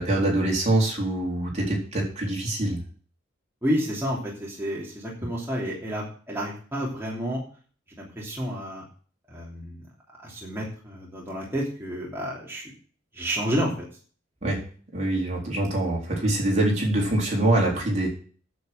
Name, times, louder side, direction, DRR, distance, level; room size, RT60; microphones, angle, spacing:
voice 1, 0.0-2.8 14.4-14.6 14.9-18.1, right 1 dB, 35° right, -2 dB, 4.0 m, -24 dB
voice 2, 3.6-7.4 8.0-8.8 9.3-9.8 10.2-12.7 13.1-13.7, equal, 15° right, -5 dB, 3.1 m, -30 dB
9.2 x 8.2 x 7.7 m, 0.42 s
head